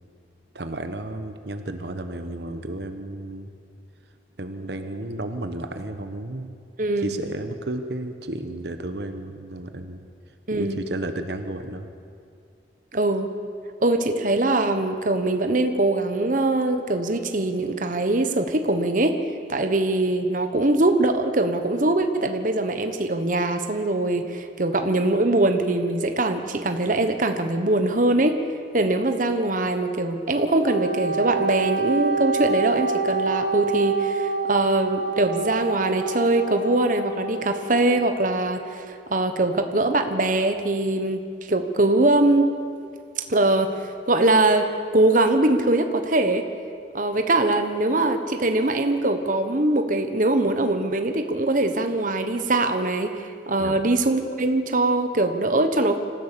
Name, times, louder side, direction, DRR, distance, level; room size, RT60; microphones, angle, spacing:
voice 1, 0.5-3.5 4.4-6.6 7.0-10.1 10.5-11.9 53.6-53.8, right 1 dB, 65° right, 7 dB, 1.1 m, -32 dB
voice 2, 10.5-10.8 12.9-13.3 13.8-19.2 19.5-28.4 28.7-42.5 43.3-43.7 44.1-44.7 44.9-46.5 46.9-56.0, right 2 dB, 45° right, 7 dB, 1.2 m, -22 dB
Wind instrument woodwind instrument, 30.6-38.3, right 4 dB, 85° left, 5.2 m, -27 dB
26.0 x 15.0 x 6.9 m, 2.3 s
head